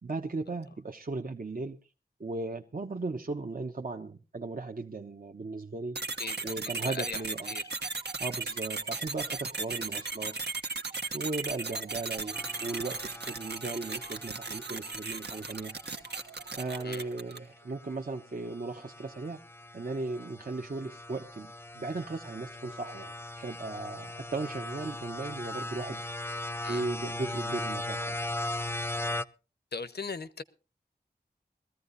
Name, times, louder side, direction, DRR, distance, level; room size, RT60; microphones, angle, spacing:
voice 1, 0.0-1.8 2.2-6.0 6.4-7.6 8.2-10.4 11.1-15.8 16.5-19.4 19.7-26.0 26.7-28.2, right 3 dB, 55° right, 1.0 m, -37 dB
sound 1, 6.0-17.5, right 3 dB, 80° right, 1.3 m, -36 dB
voice 2, 6.2-7.6 16.8-17.0 26.6-26.8 29.7-30.4, left 4 dB, 70° left, 1.0 m, -39 dB
sound 2, 12.3-17.0 17.7-18.0 18.4-29.2, left 2 dB, 15° left, 0.6 m, -39 dB
21.5 x 14.5 x 2.7 m
wide cardioid pair, 75°, 17 cm